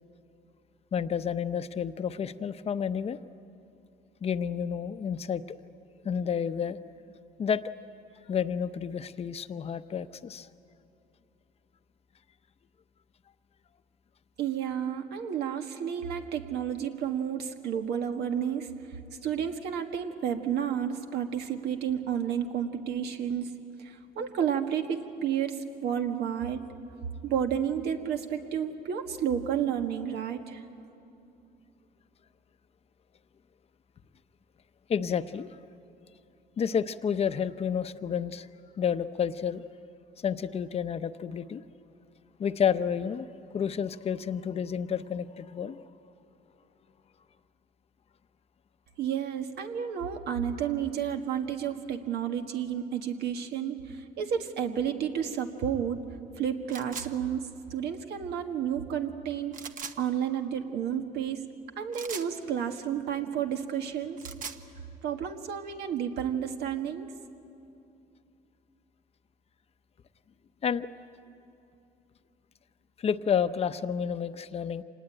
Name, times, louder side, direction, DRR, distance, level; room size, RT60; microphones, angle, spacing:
voice 1, 0.9-3.2 4.2-5.6 6.0-6.8 7.4-7.6 8.3-10.5 34.9-35.5 36.6-38.5 38.8-39.6 40.2-41.6 42.4-43.3 43.5-45.8 70.6-70.9 73.0-74.8, left 7 dB, 35° left, 11 dB, 0.8 m, -30 dB
voice 2, 14.4-18.7 19.2-23.5 23.8-26.6 27.2-30.6 49.0-56.0 56.4-59.5 60.0-61.4 61.8-64.2 65.0-67.1, right 8 dB, 75° right, 5 dB, 1.7 m, -31 dB
sound 1, 56.7-57.1 59.5-60.0 61.9-62.3 64.0-64.6, right 6 dB, 50° right, 1.2 m, -39 dB
26.0 x 19.5 x 8.9 m, 2.7 s
cardioid pair, 110°, 17 cm